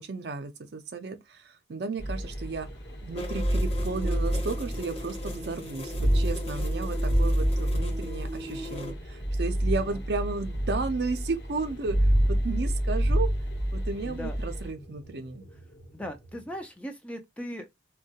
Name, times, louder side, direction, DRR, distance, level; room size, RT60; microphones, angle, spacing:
voice 1, 0.0-2.7 3.0-13.3 13.7-15.5, right 4 dB, 60° right, 0.5 m, -34 dB
sound 1, 2.0-16.3, equal, 60° left, 0.9 m, -28 dB
sound 2, 3.2-8.9, left 1 dB, 30° left, 0.8 m, -39 dB
voice 2, 14.0-14.4 15.9-17.7, equal, 5° left, 0.3 m, -38 dB
3.0 x 2.2 x 2.7 m
head